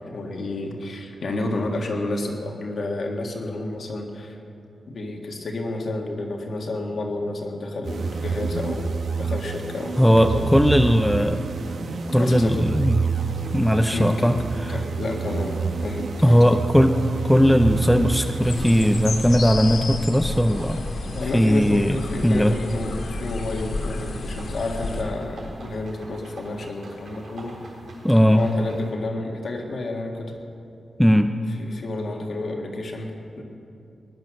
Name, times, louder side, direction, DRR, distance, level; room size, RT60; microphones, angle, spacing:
voice 1, 0.1-4.4 4.9-8.9 9.2-10.4 12.1-12.7 13.9-14.4 14.7-16.4 21.0-27.5 28.3-30.3 31.6-33.4, left 2 dB, 55° left, 1 dB, 1.9 m, -30 dB
sound 1, 7.8-19.6, right 5 dB, 65° right, 1.1 m, -29 dB
voice 2, 10.0-11.4 12.1-13.1 13.5-14.8 16.2-20.8 21.3-22.6 28.0-28.5 31.0-31.4, equal, ahead, 6 dB, 0.4 m, -18 dB
sound 2, 12.1-28.9, right 2 dB, 85° right, 4.2 m, -46 dB
sound 3, 18.4-25.0, left 2 dB, 80° left, 2.2 m, -31 dB
19.5 x 11.0 x 6.3 m, 2.7 s
wide cardioid pair, 180°, 0 cm